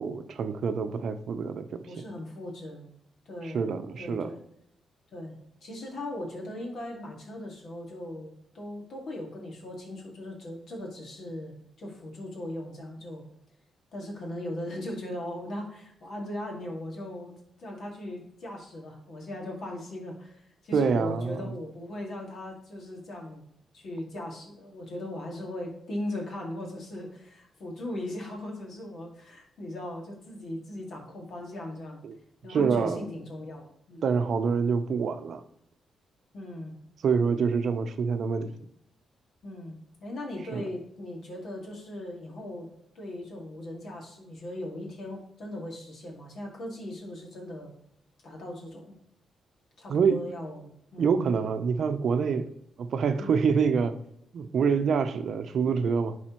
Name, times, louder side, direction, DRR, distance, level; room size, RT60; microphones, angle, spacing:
voice 1, 0.0-2.0 3.4-4.3 20.7-21.5 32.0-32.2 32.5-33.0 34.0-35.4 37.0-38.5 40.5-40.6 49.9-50.3 51.0-52.5 52.8-53.9 54.3-56.1, right 6 dB, 65° right, 9 dB, 0.6 m, -26 dB
voice 2, 1.9-2.9 3.3-3.7 4.0-4.4 5.1-5.3 5.6-13.2 13.9-17.3 17.6-23.4 23.7-32.0 32.4-34.2 36.3-36.7 39.4-42.7 43.0-47.7 48.2-48.9 49.8-51.2 53.2-53.5, left 1 dB, 65° left, 0 dB, 2.1 m, -38 dB
11.0 x 4.1 x 3.0 m, 0.75 s
cardioid pair, 100°, 0 cm